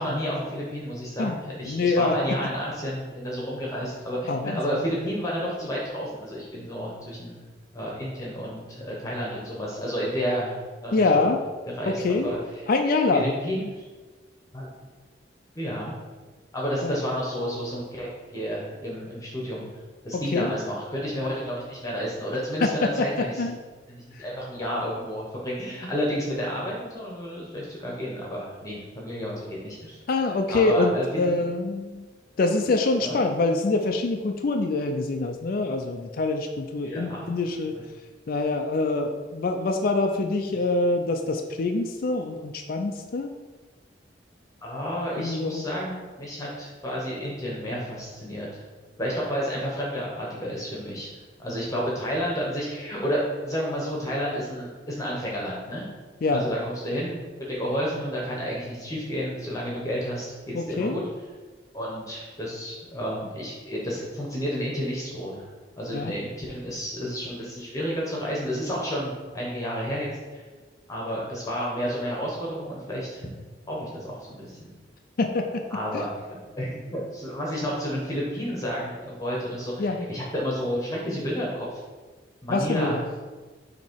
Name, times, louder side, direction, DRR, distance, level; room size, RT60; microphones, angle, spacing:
voice 1, 0.0-7.4 7.7-11.3 11.8-12.4 13.1-13.8 14.5-14.7 15.6-15.9 16.5-19.7 20.0-23.4 23.9-30.0 30.5-31.4 33.0-33.2 36.8-37.3 44.6-48.6 49.0-51.1 51.4-55.9 56.3-57.2 57.5-60.3 60.7-61.0 61.7-65.5 65.8-70.4 70.9-73.3 73.7-74.7 75.7-81.8 82.4-83.0, equal, 20° left, -4 dB, 1.0 m, -31 dB
voice 2, 1.7-2.2 4.3-4.8 10.9-11.4 11.9-12.3 12.7-13.3 16.8-17.0 20.1-20.5 22.6-23.1 23.4-23.6 24.1-24.2 30.1-32.1 32.4-37.8 38.3-43.3 45.2-45.7 56.2-56.5 60.5-61.0 65.9-66.1 75.2-75.6 75.9-76.1 79.8-80.0 82.5-83.0, left 3 dB, 50° left, 4 dB, 0.4 m, -25 dB
7.0 x 2.9 x 4.6 m, 1.3 s
head